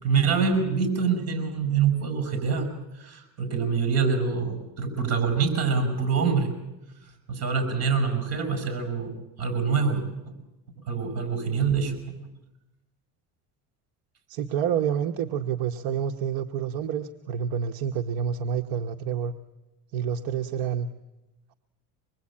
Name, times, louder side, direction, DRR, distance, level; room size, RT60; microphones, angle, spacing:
voice 1, 0.0-2.7 3.0-6.5 7.3-10.0 10.8-12.3, right 5 dB, 40° right, 7 dB, 6.5 m, -25 dB
voice 2, 14.3-19.3 19.9-20.9, right 8 dB, 65° right, 6 dB, 1.1 m, -28 dB
25.5 x 20.5 x 8.7 m, 0.98 s
cardioid pair, 140°, 38 cm